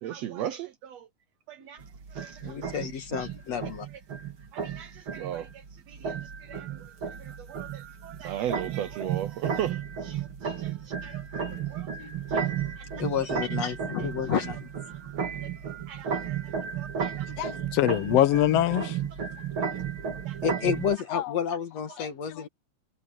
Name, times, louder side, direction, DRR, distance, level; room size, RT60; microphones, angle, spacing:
voice 1, 0.0-1.1 1.5-1.8 2.1-2.7 4.5-6.7 7.2-11.3 11.7-12.5 12.8-12.9 15.4-16.4 16.8-17.3 20.2-20.4, right 11 dB, 90° right, 1.4 m, -38 dB
sound 1, 1.8-21.0, right 7 dB, 40° right, 2.6 m, -34 dB
voice 2, 2.4-3.9 6.5-6.6 12.0-12.1 13.0-14.7 16.7-16.8 17.5-17.7 20.4-22.5, left 7 dB, 60° left, 2.2 m, -31 dB
voice 3, 17.4-19.0 21.1-21.3 22.0-22.1 22.4-22.5, left 13 dB, 85° left, 1.4 m, -24 dB
omnidirectional pair, 4.1 m